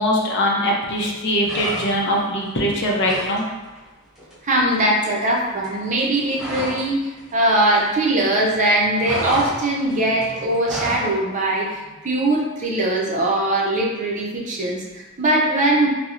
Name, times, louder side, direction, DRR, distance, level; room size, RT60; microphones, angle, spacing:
voice 1, 0.0-3.5, equal, 55° left, -2 dB, 0.6 m, -21 dB
sound 1, 1.4-2.2 2.5-3.4 3.6-3.9 4.2-6.9 7.2-8.3 8.5-11.1, equal, ahead, 1.1 m, -31 dB
voice 2, 4.4-15.9, right 1 dB, 35° right, -2 dB, 0.5 m, -21 dB
4.1 x 2.0 x 2.4 m, 1.2 s
head